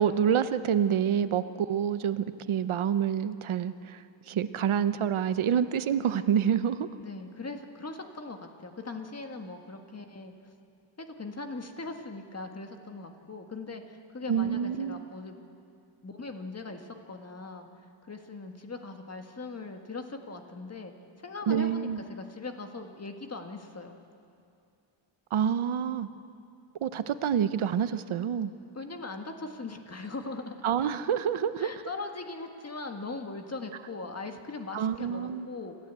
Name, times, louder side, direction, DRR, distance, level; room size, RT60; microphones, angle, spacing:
voice 1, 0.0-6.9 14.3-15.0 21.5-22.0 25.3-26.1 26.8-28.5 30.6-31.7 34.7-35.5, right 8 dB, 75° right, 12 dB, 0.8 m, -27 dB
voice 2, 7.0-10.5 11.0-15.4 16.0-24.0 28.7-30.6 31.6-35.8, left 3 dB, 30° left, 5 dB, 1.6 m, -40 dB
26.0 x 14.5 x 8.2 m, 2.6 s
wide cardioid pair, 145°, 49 cm